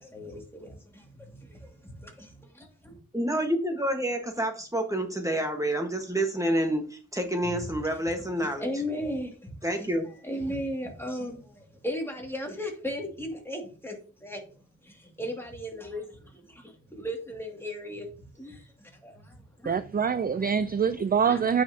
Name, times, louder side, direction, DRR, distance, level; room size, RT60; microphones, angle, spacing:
voice 1, 0.0-3.0 7.4-9.9 10.2-16.0 16.9-19.7 21.2-21.4, equal, 10° left, 2.2 m, -37 dB
voice 2, 3.1-8.6 9.6-10.1, right 1 dB, 10° right, 1.4 m, -28 dB
voice 3, 19.7-21.6, right 7 dB, 30° right, 0.3 m, -25 dB
9.0 x 5.7 x 2.8 m
wide cardioid pair, 100°, 31 cm